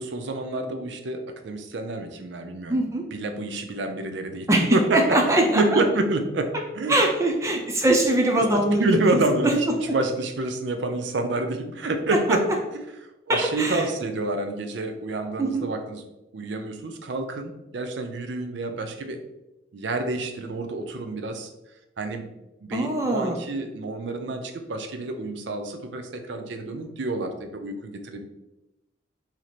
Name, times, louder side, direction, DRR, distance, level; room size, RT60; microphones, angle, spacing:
voice 1, 0.0-2.8 3.1-6.5 6.7-7.0 8.4-8.5 8.8-9.5 9.9-12.4 12.7-12.8 13.3-16.0 16.3-19.2 19.7-21.5 22.0-22.3 22.6-28.2, right 2 dB, 70° right, 6 dB, 0.5 m, -28 dB
voice 2, 2.7-3.0 4.5-5.8 6.9-10.0 13.3-13.9 15.4-15.7 22.7-23.4, right 1 dB, 15° right, 1 dB, 0.4 m, -22 dB
3.1 x 2.8 x 4.0 m, 0.96 s
head